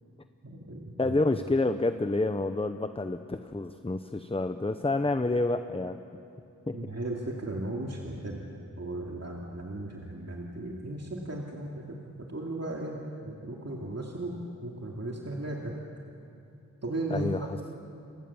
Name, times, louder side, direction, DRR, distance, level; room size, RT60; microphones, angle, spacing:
voice 1, 0.4-1.1 6.7-8.5 8.8-14.4 14.6-15.7 16.8-17.5, right 1 dB, 50° right, -2 dB, 2.5 m, -36 dB
voice 2, 1.0-6.0 6.7-6.8 17.1-17.6, left 2 dB, 15° left, 9 dB, 0.8 m, -28 dB
29.0 x 24.0 x 7.1 m, 2.7 s
wide cardioid pair, 70°, 32 cm